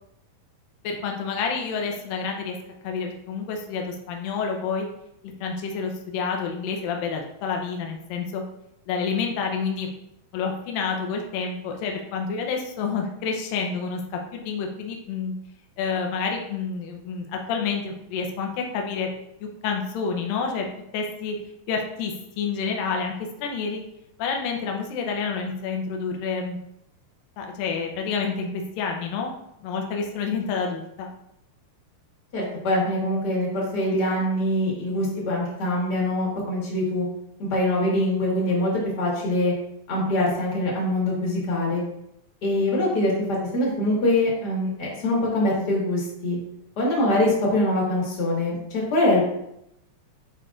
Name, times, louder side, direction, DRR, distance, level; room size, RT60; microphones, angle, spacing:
voice 1, 0.8-2.6 2.8-4.9 5.4-8.4 8.9-9.9 10.3-14.0 14.3-15.3 15.8-19.1 19.4-20.7 20.9-21.4 21.7-23.1 23.4-23.8 24.2-26.6 27.4-29.3 29.6-31.1, left 5 dB, 80° left, 2 dB, 2.5 m, -28 dB
voice 2, 32.3-37.0 37.4-39.5 39.9-41.8 42.4-46.4 46.8-49.2, left 1 dB, 40° left, -4 dB, 1.7 m, -23 dB
8.9 x 5.2 x 2.5 m, 0.79 s
omnidirectional pair, 4.1 m